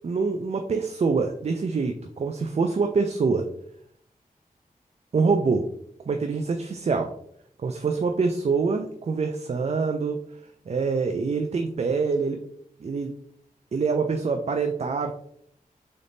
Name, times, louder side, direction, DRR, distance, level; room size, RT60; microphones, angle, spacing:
voice 1, 0.0-3.5 5.1-5.7 6.1-7.1 7.6-10.2 10.7-12.4 12.8-13.1 13.7-15.1, right 4 dB, 45° right, 6 dB, 0.4 m, -25 dB
3.8 x 3.5 x 2.6 m, 0.67 s
wide cardioid pair, 60°, 15 cm